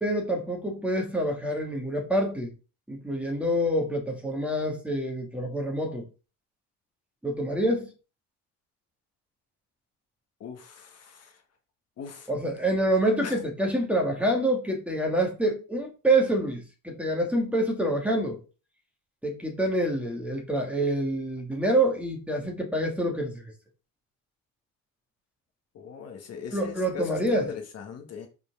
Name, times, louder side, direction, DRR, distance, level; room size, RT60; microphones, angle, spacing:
voice 1, 0.0-2.5 2.9-6.1 7.2-7.9 12.3-18.4 19.2-23.4 26.5-27.5, right 1 dB, 5° right, 2.0 m, -27 dB
voice 2, 10.4-11.4 12.0-12.3 13.2-13.3 25.7-28.3, left 7 dB, 45° left, 1.6 m, -39 dB
5.5 x 4.6 x 6.0 m
cardioid pair, 145°, 34 cm